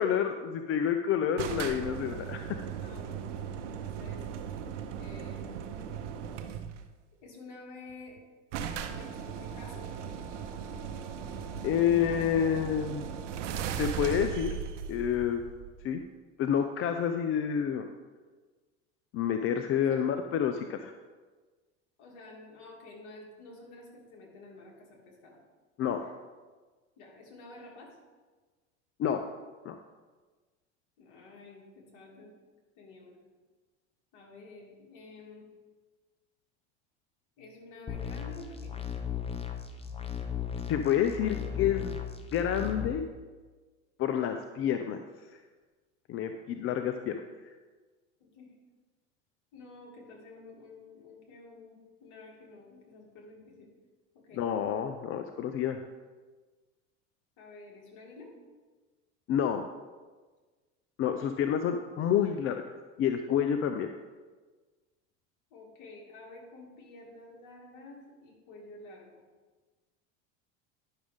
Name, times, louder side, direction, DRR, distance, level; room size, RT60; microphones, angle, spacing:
voice 1, 0.0-2.6 11.6-13.1 13.6-14.6 14.9-15.4 15.8-16.0 16.4-17.8 19.1-20.9 25.8-26.1 29.0-29.2 29.6-29.7 40.7-42.0 42.3-43.1 44.0-45.0 45.3-45.4 46.1-47.1 54.3-55.8 59.3-59.6 61.0-62.6 63.0-63.9, left 8 dB, 40° left, 7 dB, 0.5 m, -29 dB
sound 1, 1.4-6.9 7.9-8.0 8.2-8.3 8.5-16.0, right 7 dB, 85° right, 0.7 m, -38 dB
voice 2, 2.8-4.2 5.0-5.7 7.2-8.2 8.9-9.1 9.4-9.9 19.8-20.0 22.0-25.4 27.0-27.9 31.0-32.3 32.8-33.2 34.1-35.5 37.4-38.8 48.2-48.5 49.5-53.7 54.1-54.4 57.4-58.3 65.5-69.2, left 3 dB, 60° left, -2 dB, 2.7 m, -50 dB
sound 2, 37.9-42.9, left 8 dB, 15° left, 0.8 m, -36 dB
10.5 x 6.2 x 3.6 m, 1.4 s
hypercardioid pair, 95°, 35 cm